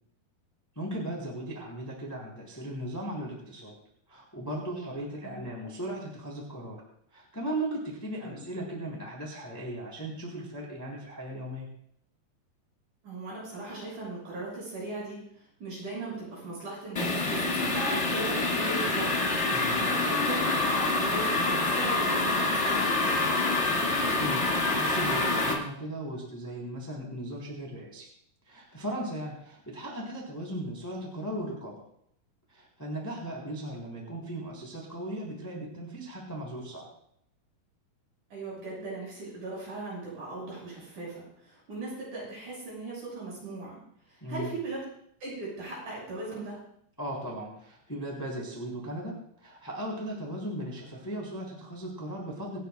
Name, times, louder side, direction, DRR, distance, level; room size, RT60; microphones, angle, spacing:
voice 1, 0.7-3.7 4.1-6.8 7.1-11.7 19.5-19.8 24.2-28.1 28.4-31.7 32.5-36.9 44.2-44.5 47.0-52.6, right 1 dB, 5° left, -3 dB, 2.8 m, -37 dB
voice 2, 13.0-15.2 15.6-22.8 38.3-43.8 44.1-44.8 45.2-46.6, right 2 dB, 50° right, -6 dB, 8.2 m, -38 dB
sound 1, 16.9-25.5, left 2 dB, 35° left, 1.1 m, -26 dB
27.0 x 10.0 x 2.3 m, 0.70 s
omnidirectional pair, 4.5 m